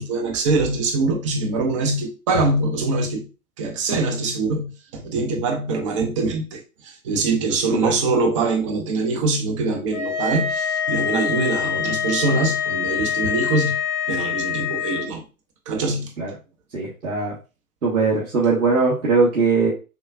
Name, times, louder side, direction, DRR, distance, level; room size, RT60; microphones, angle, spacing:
voice 1, 0.0-3.3 3.6-13.8 14.1-15.2 15.7-16.1, right 3 dB, 20° right, 0.6 m, -23 dB
sound 1, 9.9-15.1, left 7 dB, 30° left, 0.7 m, -25 dB
voice 2, 16.7-17.3 17.8-19.7, right 4 dB, 75° right, 1.5 m, -20 dB
6.7 x 2.2 x 2.4 m
figure-of-eight pair, 125°, 44 cm